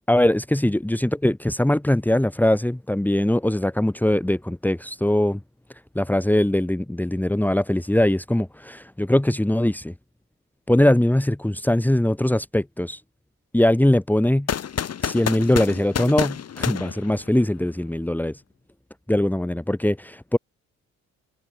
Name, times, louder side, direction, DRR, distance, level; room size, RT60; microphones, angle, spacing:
voice 1, 0.1-5.4 6.0-9.9 10.7-13.0 13.5-14.5 15.0-18.4 19.1-20.4, left 1 dB, 5° left, 3.6 m, -21 dB
sound 1, 14.5-17.7, left 8 dB, 55° left, 5.5 m, -29 dB
cardioid pair, 90°, 30 cm